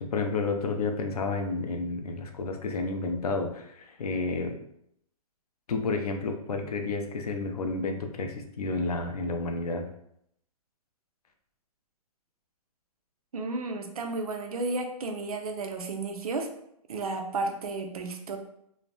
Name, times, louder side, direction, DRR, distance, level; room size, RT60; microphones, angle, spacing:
voice 1, 0.0-4.6 5.7-9.8, left 3 dB, 90° left, 5 dB, 0.5 m, -31 dB
voice 2, 13.3-16.5 16.9-18.4, right 3 dB, 75° right, 4 dB, 0.5 m, -32 dB
3.2 x 2.1 x 2.5 m, 0.74 s
hypercardioid pair, 180°, 19 cm